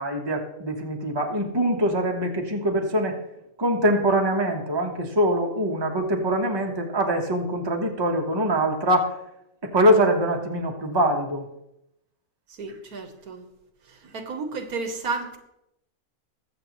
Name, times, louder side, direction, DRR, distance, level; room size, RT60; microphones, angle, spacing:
voice 1, 0.0-3.2 3.6-9.1 9.7-11.5, right 1 dB, 20° right, 1 dB, 1.2 m, -23 dB
voice 2, 12.6-13.4 14.0-15.4, right 4 dB, 80° right, 6 dB, 1.6 m, -32 dB
21.0 x 7.5 x 3.1 m, 0.86 s
omnidirectional pair, 1.6 m